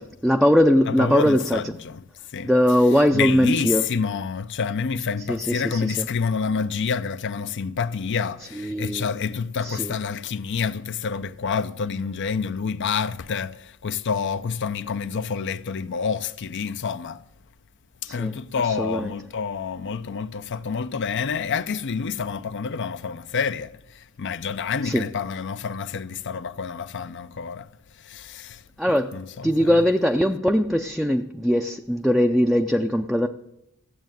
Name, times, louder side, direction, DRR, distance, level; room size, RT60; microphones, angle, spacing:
voice 1, 0.0-1.6 2.4-3.8 5.3-6.1 8.6-9.1 9.6-9.9 18.1-18.3 18.6-19.1 24.8-25.0 28.8-29.1 29.4-33.3, equal, ahead, 0.4 m, -21 dB
voice 2, 0.9-2.0 2.3-2.5 3.1-17.2 18.0-27.7 27.9-29.8, left 6 dB, 55° left, 0.5 m, -28 dB
15.0 x 7.3 x 9.1 m
head